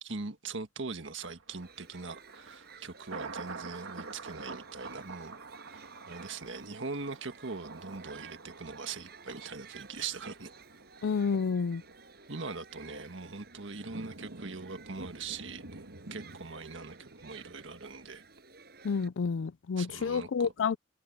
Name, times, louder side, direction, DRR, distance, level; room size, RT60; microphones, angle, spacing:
voice 1, 0.0-5.4 5.7-10.5 12.3-15.8 16.1-18.2 19.8-20.5, right 4 dB, 70° right, 1.6 m, -41 dB
Thunder, 1.2-18.3 18.7-18.8, right 3 dB, 85° right, 2.5 m, -48 dB
Shout / Human group actions, 1.5-19.1, right 5 dB, 50° right, 7.6 m, -55 dB
voice 2, 11.0-11.8 18.8-20.8, left 5 dB, 70° left, 0.4 m, -29 dB
head